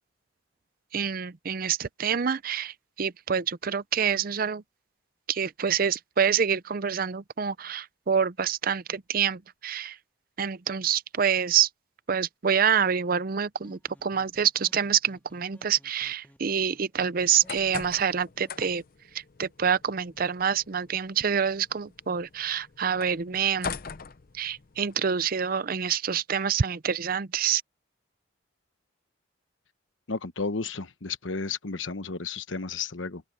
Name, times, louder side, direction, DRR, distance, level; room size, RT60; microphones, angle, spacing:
voice 1, 0.9-4.6 5.3-10.0 10.4-11.7 12.1-18.8 19.1-23.8 24.3-27.6, right 7 dB, 45° right, 0.5 m, -27 dB
sound 1, 13.5-18.8, equal, 10° left, 2.1 m, -57 dB
sound 2, 17.2-24.9, left 6 dB, 45° left, 0.6 m, -42 dB
voice 2, 30.1-33.2, left 4 dB, 75° left, 1.1 m, -33 dB
head